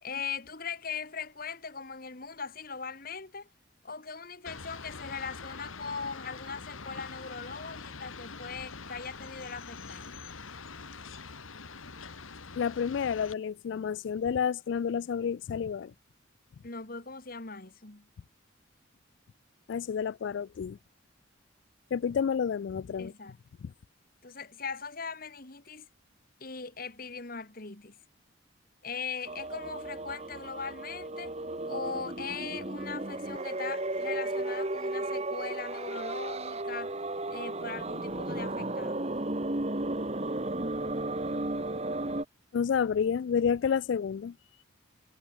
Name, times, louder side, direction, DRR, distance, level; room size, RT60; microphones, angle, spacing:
voice 1, 0.0-3.5 3.8-10.1 16.6-18.1 23.0-23.4 24.2-25.9 26.4-28.0 28.8-31.3 31.7-37.0 37.3-39.1, left 5 dB, 45° left, 1.7 m, -40 dB
sound 1, 4.5-13.3, left 4 dB, 90° left, 1.9 m, -44 dB
voice 2, 12.6-15.9 19.7-20.8 21.9-23.1 23.6-23.7 42.5-44.3, left 7 dB, 60° left, 0.3 m, -30 dB
sound 2, 29.3-42.3, right 2 dB, 30° right, 1.5 m, -34 dB
head